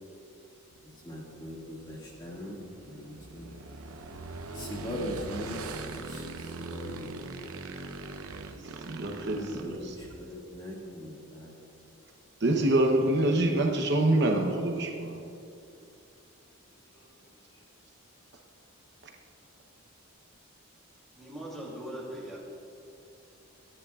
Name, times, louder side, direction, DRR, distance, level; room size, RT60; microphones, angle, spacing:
Motorcycle / Engine, 0.7-10.4, right 3 dB, 85° right, 0.8 m, -42 dB
voice 1, 1.0-2.6 2.9-3.5 4.5-6.2 6.7-7.3 9.5-11.5 16.9-17.0, equal, 20° left, -4 dB, 2.0 m, -40 dB
voice 2, 8.6-10.0 12.4-15.2, right 1 dB, 50° right, 1 dB, 0.9 m, -26 dB
voice 3, 21.2-22.4, right 1 dB, ahead, -5 dB, 2.9 m, -40 dB
24.0 x 10.0 x 2.4 m, 2.7 s
head